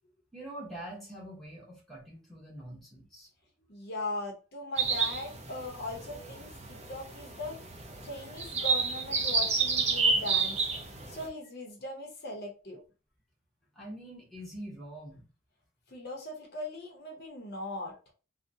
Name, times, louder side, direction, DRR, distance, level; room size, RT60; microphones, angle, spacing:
voice 1, 0.3-3.3 13.7-15.3, right 1 dB, ahead, -4 dB, 0.8 m, -44 dB
voice 2, 3.7-7.6 8.0-10.6 11.1-12.8 15.9-17.9, left 2 dB, 50° left, 1 dB, 0.7 m, -39 dB
sound 1, 4.8-11.3, right 4 dB, 30° right, 0.5 m, -30 dB
3.7 x 2.1 x 2.6 m, 0.34 s
head